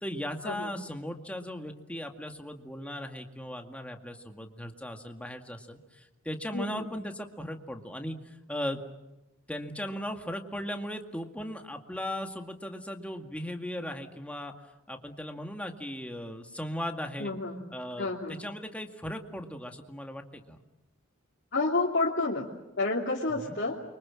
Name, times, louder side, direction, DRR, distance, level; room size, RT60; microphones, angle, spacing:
voice 1, 0.0-8.8 9.5-14.5 14.9-17.3 17.7-20.6 23.3-23.6, equal, 5° left, 4 dB, 2.1 m, -37 dB
voice 2, 6.5-6.8 17.2-17.6 18.0-18.4 21.5-22.5 22.8-23.8, left 3 dB, 55° left, -4 dB, 2.9 m, -29 dB
29.0 x 24.5 x 7.6 m, 0.95 s
head